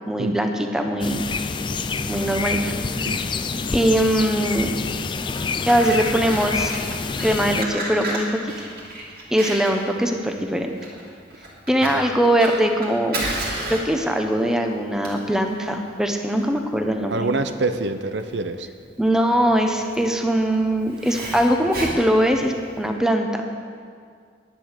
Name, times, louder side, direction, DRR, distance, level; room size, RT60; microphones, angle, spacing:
voice 1, 0.1-1.2 2.1-3.3 3.7-4.8 5.7-6.7 7.2-8.4 9.3-10.8 11.7-13.3 13.7-17.2 19.0-23.4, right 1 dB, 5° right, 3 dB, 0.8 m, -21 dB
sound 1, 1.0-7.7, left 4 dB, 25° left, 0.4 m, -27 dB
Fire, 5.1-22.9, right 1 dB, 55° right, 2.9 m, -33 dB
voice 2, 17.1-18.7, right 3 dB, 70° right, 9 dB, 0.7 m, -26 dB
11.0 x 10.0 x 6.6 m, 2.1 s
head